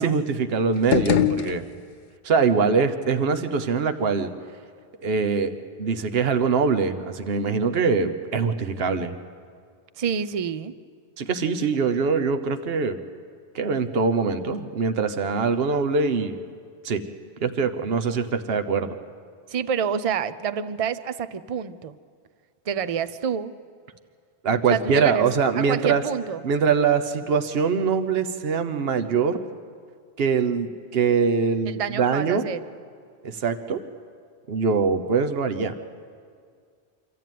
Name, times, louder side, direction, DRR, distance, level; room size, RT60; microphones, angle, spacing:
voice 1, 0.0-1.6 2.2-4.3 5.0-5.5 5.8-9.1 11.2-13.0 13.5-16.4 16.8-17.0 17.4-19.0 24.4-26.0 26.4-29.4 30.2-32.4 33.2-33.8 34.5-35.7, right 5 dB, 65° right, 9 dB, 1.1 m, -23 dB
sound 1, 0.7-2.2, left 8 dB, 50° left, 0.7 m, -24 dB
voice 2, 10.0-10.7 19.5-22.0 22.7-23.5 24.7-25.3 25.6-26.4 31.6-32.6, right 7 dB, 40° right, 14 dB, 0.6 m, -28 dB
25.5 x 13.5 x 9.3 m, 2.1 s
omnidirectional pair, 1.1 m